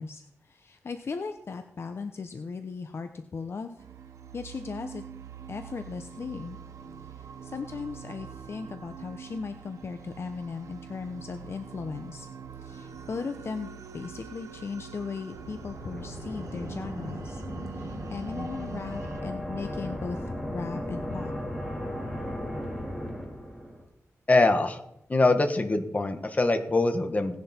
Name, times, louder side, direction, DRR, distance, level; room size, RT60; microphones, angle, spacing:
voice 1, 0.0-3.7 4.3-5.0 5.5-6.6 7.1-12.3 12.6-17.4 17.7-21.3, left 5 dB, 50° left, 7 dB, 0.9 m, -37 dB
sound 1, 3.8-19.2, right 7 dB, 85° right, 0.9 m, -44 dB
sound 2, 15.3-23.8, left 1 dB, ahead, 3.7 m, -36 dB
voice 2, 24.3-24.8 25.1-27.4, left 2 dB, 30° left, 7 dB, 1.6 m, -23 dB
17.5 x 10.5 x 4.5 m, 0.77 s
wide cardioid pair, 125°, 5 cm